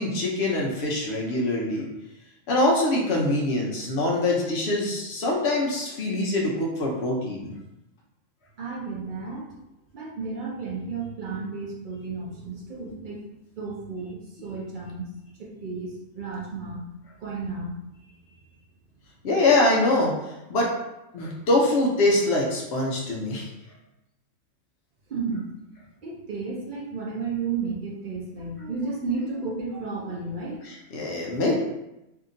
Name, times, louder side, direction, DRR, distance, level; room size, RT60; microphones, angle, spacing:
voice 1, 0.0-1.9 2.5-7.5 19.2-20.1 20.5-20.7 21.1-23.5 30.6-31.6, left 2 dB, 60° left, -2 dB, 0.8 m, -24 dB
voice 2, 8.6-9.5 9.9-13.2 13.6-15.1 15.4-16.8 17.2-17.8 25.1-25.4 26.0-30.6, right 4 dB, 55° right, -3 dB, 0.5 m, -32 dB
2.8 x 2.5 x 2.5 m, 0.91 s
omnidirectional pair, 1.4 m